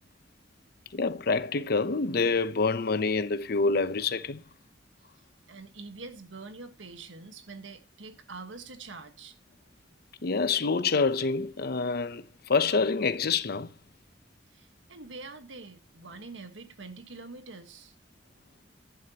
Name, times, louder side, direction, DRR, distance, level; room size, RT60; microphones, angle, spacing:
voice 1, 0.9-4.4 10.2-12.2 12.5-13.7, left 4 dB, 60° left, 0.7 m, -26 dB
voice 2, 5.5-9.4 14.5-17.9, right 3 dB, 90° right, 1.5 m, -45 dB
11.5 x 11.0 x 2.9 m
head